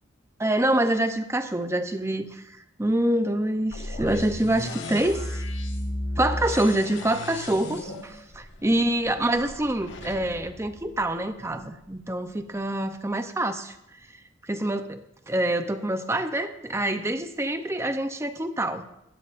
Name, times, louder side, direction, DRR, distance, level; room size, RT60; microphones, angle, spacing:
voice 1, 0.4-5.4 6.2-13.8 14.4-18.8, right 1 dB, 15° right, 9 dB, 0.6 m, -26 dB
sound 1, 3.7-11.6, left 1 dB, 75° left, 1.5 m, -35 dB
17.5 x 13.0 x 2.5 m, 0.84 s
head